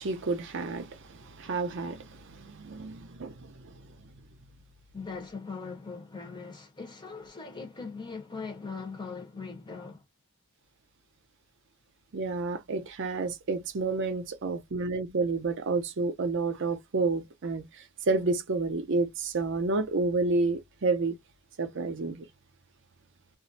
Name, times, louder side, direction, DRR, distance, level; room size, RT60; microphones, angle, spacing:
voice 1, 0.0-3.9 12.1-21.2 21.6-22.3, right 3 dB, 55° right, 0.5 m, -30 dB
voice 2, 4.9-10.0, left 4 dB, 20° left, 0.9 m, -40 dB
2.4 x 2.0 x 2.6 m
head